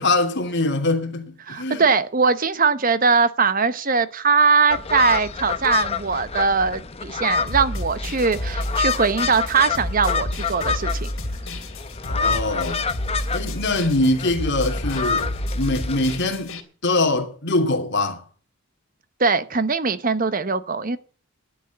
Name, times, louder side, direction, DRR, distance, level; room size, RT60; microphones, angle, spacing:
voice 1, 0.0-1.8 12.1-12.9 13.3-16.6 16.8-18.2, left 2 dB, 50° left, 2.9 m, -23 dB
voice 2, 1.5-11.1 19.2-21.0, right 5 dB, 40° right, 0.9 m, -21 dB
sound 1, 4.7-16.2, left 5 dB, 25° left, 0.8 m, -28 dB
sound 2, 7.5-16.6, left 1 dB, 70° left, 3.2 m, -30 dB
12.0 x 9.2 x 8.5 m
head